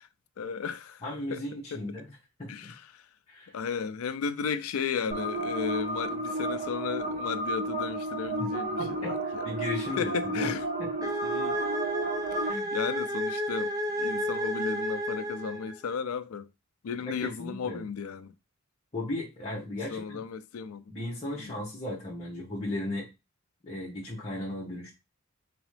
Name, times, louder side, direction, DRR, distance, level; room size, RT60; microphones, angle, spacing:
voice 1, 0.4-1.0 1.3-1.4 1.7-1.8 2.5-3.0 3.5-9.4 10.0-10.7 11.2-11.6 12.3-12.4 12.7-16.5 16.8-18.3 19.9-20.8 21.4-21.5, left 6 dB, 75° left, 0.4 m, -34 dB
voice 2, 1.0-2.1 2.4-2.7 3.3-3.6 8.8-10.5 10.8-11.1 12.4-12.7 17.2-17.8 18.9-20.2 20.9-23.1 23.6-24.9, left 1 dB, 30° left, 1.1 m, -36 dB
sound 1, 5.1-12.5, right 2 dB, 40° right, 2.3 m, -32 dB
sound 2, 11.0-15.9, equal, 15° right, 0.5 m, -31 dB
3.7 x 3.0 x 3.2 m
head